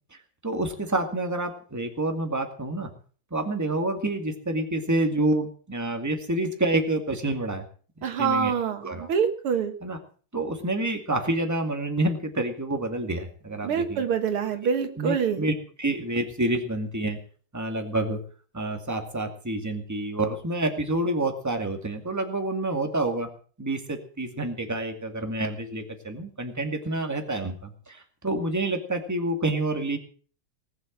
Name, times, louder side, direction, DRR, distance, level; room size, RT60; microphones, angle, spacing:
voice 1, 0.1-2.9 3.3-7.6 8.0-8.5 8.8-9.1 9.8-10.0 10.3-14.0 15.0-17.2 17.5-18.2 18.5-23.3 23.6-30.0, right 2 dB, 10° right, 4 dB, 2.1 m, -28 dB
voice 2, 8.0-9.7 13.6-15.4, right 7 dB, 90° right, 7 dB, 2.5 m, -25 dB
19.0 x 8.0 x 7.4 m, 0.43 s
omnidirectional pair, 2.3 m